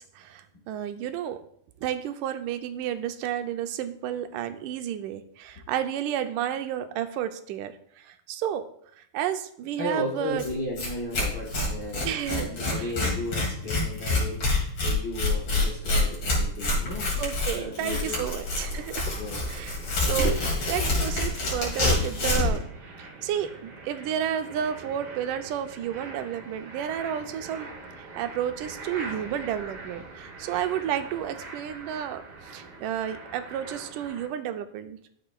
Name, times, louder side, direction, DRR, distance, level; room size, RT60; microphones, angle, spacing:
voice 1, 0.0-1.4 1.8-8.6 9.0-10.4 12.0-12.9 17.2-19.2 19.5-20.4 20.7-22.7 23.0-27.7 28.0-35.0, right 10 dB, 90° right, 9 dB, 2.1 m, -31 dB
voice 2, 9.8-17.2 17.5-18.3 19.1-19.5 20.2-20.4, left 2 dB, 65° left, -3 dB, 1.0 m, -34 dB
Tearing, 10.4-10.5 10.8-10.9 11.1-22.6, left 2 dB, 45° left, 3.2 m, -26 dB
sound 1, 15.8-34.3, right 3 dB, 65° right, 2.7 m, -44 dB
11.5 x 7.6 x 2.3 m, 0.66 s
omnidirectional pair, 3.6 m